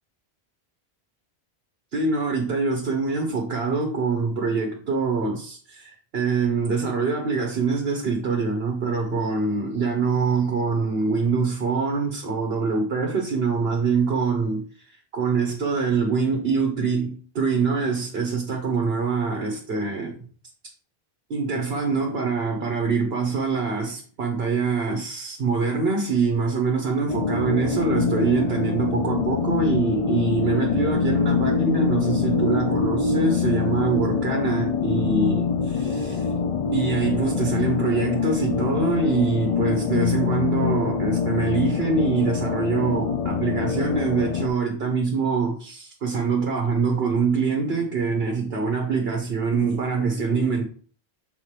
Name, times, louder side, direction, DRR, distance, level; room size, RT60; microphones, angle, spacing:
voice 1, 1.9-20.3 21.3-36.3 36.7-50.6, right 4 dB, 70° right, 1.2 m, -24 dB
sound 1, 27.1-44.5, left 5 dB, 45° left, 0.5 m, -24 dB
7.3 x 3.9 x 3.3 m
omnidirectional pair, 1.1 m